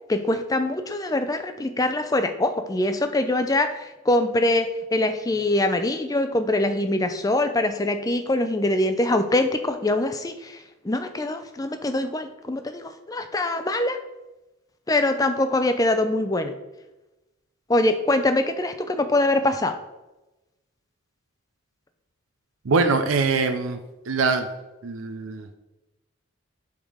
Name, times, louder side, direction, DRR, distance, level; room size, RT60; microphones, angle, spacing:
voice 1, 0.1-14.0 14.9-16.5 17.7-19.8, left 2 dB, 15° left, 8 dB, 0.4 m, -23 dB
voice 2, 22.6-23.8 24.1-24.5 24.8-25.6, right 4 dB, 85° right, 7 dB, 0.5 m, -23 dB
7.1 x 3.6 x 5.0 m, 1.0 s
head